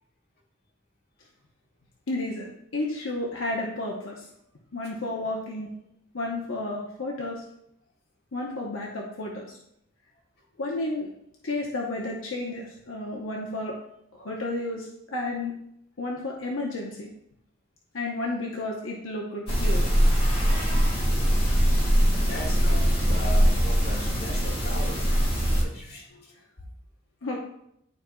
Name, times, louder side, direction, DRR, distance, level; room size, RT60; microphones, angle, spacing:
voice 1, 2.1-4.2 4.7-5.7 6.1-7.4 8.3-9.6 10.6-11.1 11.4-13.7 14.1-15.5 16.0-17.1 17.9-19.8 27.2-27.4, left 2 dB, 85° left, -2 dB, 1.0 m, -32 dB
sound 1, 19.5-25.6, equal, 30° left, 1.9 m, -22 dB
voice 2, 21.3-21.8 22.1-25.2 25.5-26.7, left 1 dB, 55° left, -2 dB, 1.9 m, -39 dB
11.5 x 4.4 x 2.3 m, 0.76 s
head